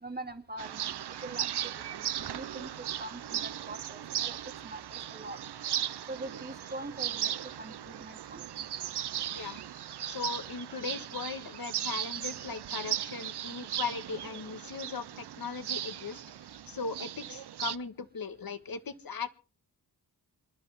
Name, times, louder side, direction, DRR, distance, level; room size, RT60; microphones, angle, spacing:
voice 1, 0.0-2.7 3.0-4.4 4.6-5.4 6.1-7.3 7.6-8.5 9.3-9.6, right 2 dB, 25° right, 6 dB, 2.4 m, -43 dB
sound 1, 0.6-17.8, right 10 dB, 85° right, 0.7 m, -37 dB
voice 2, 10.1-16.2 16.7-19.3, left 5 dB, 65° left, 11 dB, 1.6 m, -38 dB
27.0 x 12.0 x 3.6 m, 0.38 s
cardioid pair, 60°, 39 cm